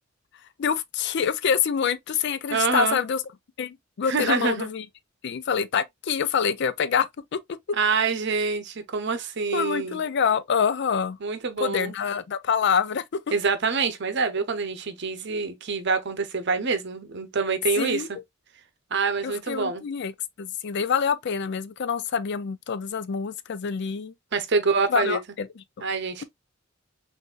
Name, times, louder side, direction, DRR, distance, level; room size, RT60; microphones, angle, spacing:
voice 1, 0.6-3.2 3.6-4.9 5.2-7.1 7.3-7.4 9.5-11.2 11.6-13.2 17.8-18.1 19.2-20.1 20.4-24.1 24.9-25.5, left 7 dB, 60° left, 0.4 m, -26 dB
voice 2, 2.5-3.0 4.1-4.7 7.8-10.0 11.2-11.9 13.3-18.1 18.9-19.8 24.3-25.2 25.8-26.2, right 4 dB, 60° right, 0.8 m, -26 dB
6.1 x 2.6 x 2.3 m
head